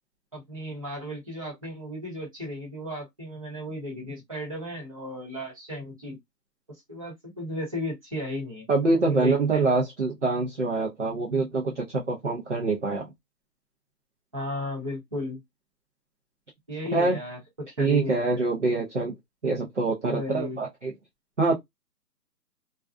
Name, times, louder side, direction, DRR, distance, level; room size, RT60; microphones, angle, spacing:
voice 1, 0.3-6.2 6.9-8.6 8.9-9.7 14.3-15.4 16.7-18.5 20.1-20.6, left 1 dB, 20° right, 0.9 m, -35 dB
voice 2, 8.7-13.1 16.9-17.2 17.8-19.1 19.4-20.9 21.4-21.5, right 3 dB, 45° right, 0.6 m, -25 dB
2.4 x 2.2 x 2.3 m
hypercardioid pair, 175°, 50 cm